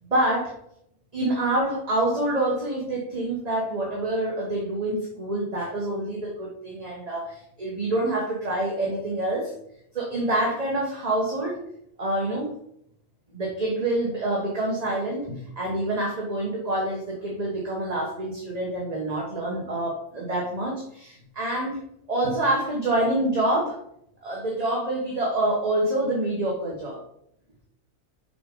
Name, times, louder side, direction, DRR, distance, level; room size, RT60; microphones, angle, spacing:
voice 1, 0.1-0.5 1.1-9.5 9.9-11.6 12.0-12.5 13.3-21.8 22.1-23.8 24.2-27.0, right 1 dB, 30° right, -3 dB, 1.3 m, -26 dB
6.7 x 5.3 x 3.8 m, 0.73 s
omnidirectional pair, 1.4 m